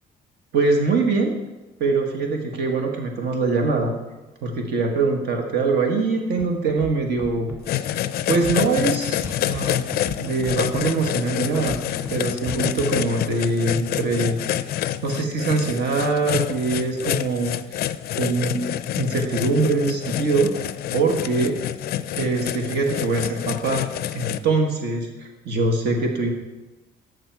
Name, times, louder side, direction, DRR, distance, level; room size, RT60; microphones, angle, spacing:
voice 1, 0.5-1.3 1.8-3.9 4.4-7.5 7.8-7.9 8.3-11.8 12.1-14.4 15.0-17.9 18.1-18.7 19.0-21.6 22.1-23.9 24.1-26.3, right 3 dB, 65° right, 3 dB, 1.3 m, -23 dB
Scratching (performance technique), 6.4-6.5 6.7-6.9 7.2-7.6 8.3-8.9 9.2-9.7 9.9-10.2 10.4-10.8 11.5-12.1 12.5-12.8, equal, 10° right, 1.8 m, -34 dB
sound 1, 7.6-24.4, left 12 dB, 60° left, 0.4 m, -27 dB
12.5 x 6.6 x 4.5 m, 1.1 s
cardioid pair, 160°, 18 cm